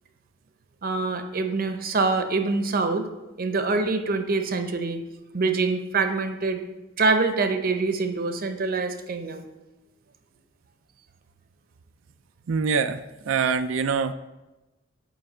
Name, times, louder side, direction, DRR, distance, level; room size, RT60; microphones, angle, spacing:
voice 1, 0.8-3.1 3.4-5.0 5.3-6.6 7.0-9.5, right 3 dB, 50° right, 7 dB, 0.7 m, -25 dB
voice 2, 12.5-13.0 13.3-14.1, right 5 dB, 85° right, 10 dB, 0.4 m, -24 dB
9.2 x 3.3 x 6.5 m, 1.0 s
head